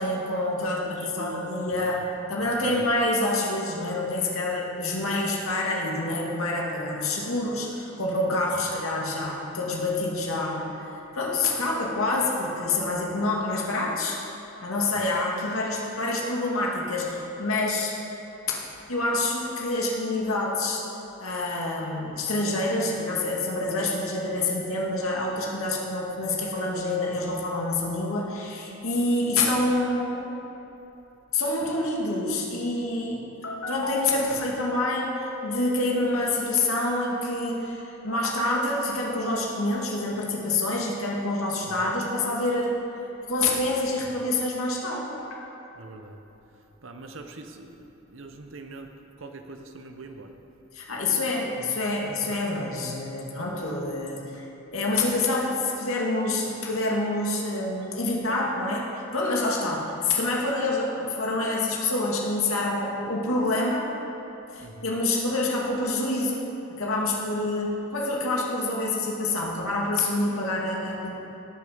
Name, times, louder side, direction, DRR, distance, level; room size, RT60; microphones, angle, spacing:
voice 1, 0.0-10.7 11.1-14.2 14.6-18.0 18.9-20.8 21.2-30.3 31.3-42.8 43.3-45.4 50.7-54.4 54.7-63.9 64.5-66.4 66.7-71.1, left 2 dB, 85° left, -3 dB, 2.1 m, -27 dB
voice 2, 0.6-1.7 2.6-2.9 14.9-15.0 41.6-41.9 45.7-46.2 46.6-50.4 64.6-64.9, right 2 dB, 65° right, 5 dB, 0.9 m, -43 dB
17.5 x 6.8 x 5.1 m, 3.0 s
head